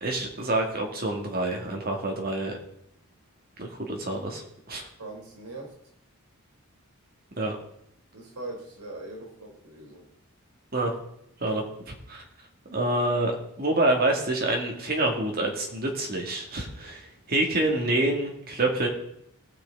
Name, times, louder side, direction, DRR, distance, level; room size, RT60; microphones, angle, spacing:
voice 1, 0.0-2.6 3.6-4.4 4.7-4.9 7.4-7.6 10.7-10.9 11.4-12.2 12.7-18.9, right 2 dB, 40° right, 2 dB, 2.2 m, -27 dB
voice 2, 5.0-5.7 8.1-10.0, right 2 dB, 90° right, -1 dB, 3.4 m, -41 dB
19.0 x 6.6 x 3.8 m, 0.74 s
head